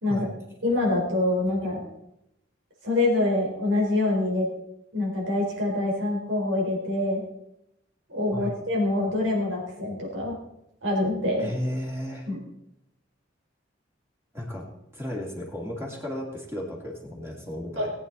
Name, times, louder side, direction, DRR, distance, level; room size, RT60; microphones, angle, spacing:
voice 1, 0.6-1.8 2.8-4.5 4.9-7.2 8.1-10.4 10.8-11.5 12.3-12.4 17.8-17.9, left 2 dB, 80° right, -1 dB, 4.4 m, -25 dB
voice 2, 11.4-12.3 14.3-14.6 14.9-17.9, left 1 dB, 15° right, -2 dB, 2.7 m, -34 dB
19.5 x 8.8 x 4.1 m, 0.84 s
head